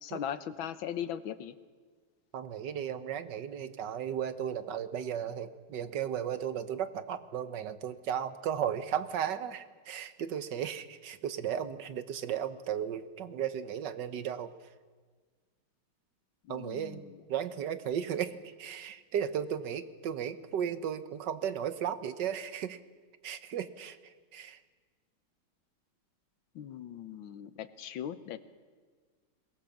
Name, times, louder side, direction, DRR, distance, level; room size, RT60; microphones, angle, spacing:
voice 1, 0.0-1.6 16.4-17.0 26.5-28.4, left 9 dB, 75° left, 12 dB, 1.7 m, -39 dB
voice 2, 2.3-14.7 16.5-22.8 23.2-24.6, right 9 dB, 65° right, 11 dB, 1.5 m, -35 dB
23.0 x 20.5 x 7.2 m, 1.5 s
omnidirectional pair, 2.2 m